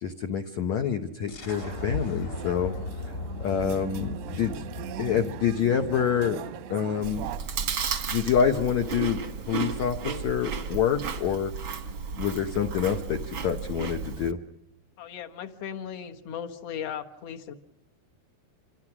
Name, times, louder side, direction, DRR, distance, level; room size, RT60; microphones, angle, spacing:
voice 1, 0.0-2.8 3.4-4.6 5.0-6.4 6.7-7.3 8.1-9.2 9.5-11.5 12.2-14.4, left 8 dB, 75° left, 5 dB, 1.7 m, -27 dB
sound 1, 1.3-6.8, left 2 dB, 35° left, 1.6 m, -37 dB
sound 2, 1.4-7.4, right 9 dB, 85° right, 3.4 m, -40 dB
Chewing mastication, 7.0-14.3, right 6 dB, 55° right, 1.3 m, -34 dB
voice 2, 15.0-17.5, left 8 dB, 60° left, 5 dB, 1.7 m, -37 dB
28.5 x 26.5 x 6.0 m, 0.87 s
omnidirectional pair, 4.7 m